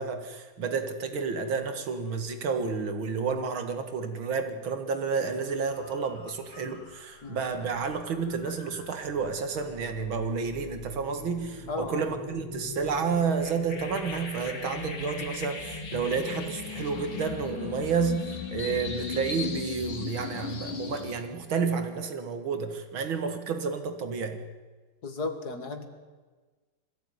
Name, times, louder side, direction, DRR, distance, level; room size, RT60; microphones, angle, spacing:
voice 1, 0.0-24.4, right 5 dB, 70° right, 7 dB, 2.6 m, -30 dB
sound 1, 5.1-5.3 5.7-21.1, left 5 dB, 85° left, 3.4 m, -39 dB
voice 2, 11.7-12.1 25.0-25.9, left 3 dB, 50° left, 7 dB, 2.4 m, -34 dB
22.0 x 15.0 x 9.6 m, 1.3 s
omnidirectional pair, 2.3 m